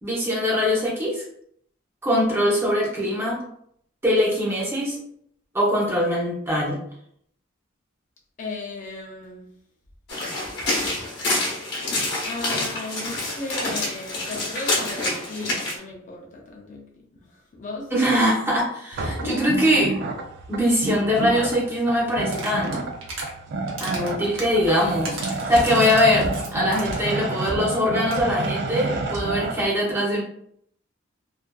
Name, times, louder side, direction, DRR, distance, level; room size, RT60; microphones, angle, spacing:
voice 1, 0.0-1.2 2.0-3.4 4.0-5.0 5.5-6.8 17.9-20.0 20.5-22.9 23.8-30.2, equal, 10° right, 0.7 m, -22 dB
voice 2, 8.4-9.5 12.2-17.9 19.2-19.5 24.1-24.2, left 2 dB, 40° left, 0.4 m, -35 dB
sound 1, 10.1-15.8, left 2 dB, 60° left, 0.8 m, -27 dB
sound 2, 18.9-29.6, right 3 dB, 55° right, 0.3 m, -30 dB
sound 3, 22.2-23.3 23.7-27.1 27.4-27.5 27.7-27.8 28.0-28.3, right 2 dB, 90° right, 0.8 m, -35 dB
2.4 x 2.4 x 2.2 m
head